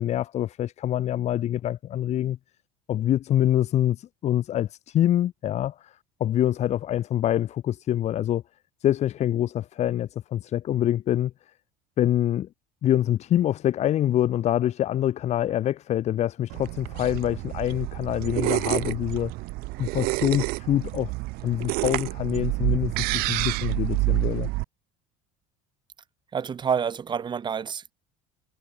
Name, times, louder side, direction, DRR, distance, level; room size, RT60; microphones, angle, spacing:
voice 1, 0.0-2.4 2.9-5.9 6.2-8.4 8.8-11.3 12.0-12.5 12.8-19.3 19.8-21.1 21.4-24.5, left 12 dB, 40° left, 2.3 m, -25 dB
sound 1, 16.5-24.6, right 23 dB, 65° right, 1.7 m, -28 dB
voice 2, 26.3-27.9, right 7 dB, 25° right, 4.3 m, -28 dB
cardioid pair, 140°, 17 cm